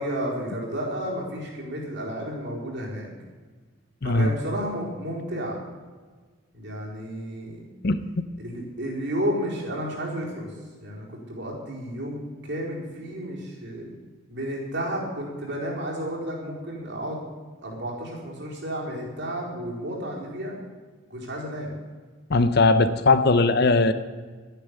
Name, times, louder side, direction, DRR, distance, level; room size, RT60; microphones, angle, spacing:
voice 1, 0.0-3.1 4.0-5.6 6.5-7.6 8.4-10.5 10.8-14.0 14.3-17.2 17.6-20.6 21.1-21.7, equal, 55° right, -3 dB, 4.4 m, -32 dB
voice 2, 4.0-4.3 7.8-8.0 22.3-23.9, left 3 dB, 50° left, 12 dB, 0.8 m, -19 dB
12.5 x 10.0 x 8.3 m, 1.4 s
head